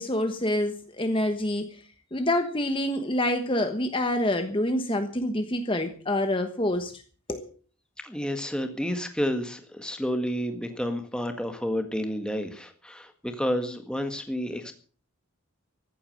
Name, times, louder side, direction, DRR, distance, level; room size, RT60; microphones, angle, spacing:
voice 1, 0.0-1.8 2.1-7.0 7.3-7.5, left 1 dB, 25° left, 1.2 m, -27 dB
voice 2, 8.0-14.7, equal, 5° left, 1.7 m, -30 dB
14.5 x 11.0 x 6.6 m
head